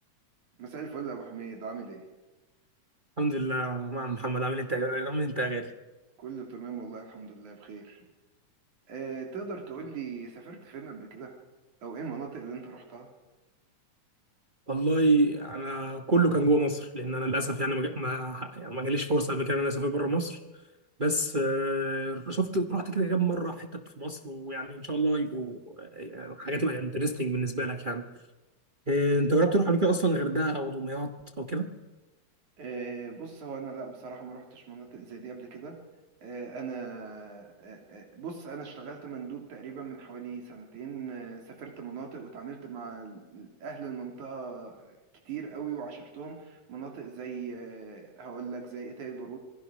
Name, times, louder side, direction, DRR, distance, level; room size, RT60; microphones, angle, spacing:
voice 1, 0.6-2.1 6.2-8.0 8.9-11.4 11.8-13.1 32.6-35.8 36.2-45.0 45.3-49.4, right 5 dB, 90° right, 1 dB, 4.6 m, -40 dB
voice 2, 3.2-5.7 14.7-20.4 21.0-28.1 28.9-31.7, right 1 dB, 50° right, 4 dB, 0.5 m, -28 dB
27.0 x 22.0 x 6.3 m, 1.1 s
omnidirectional pair, 3.3 m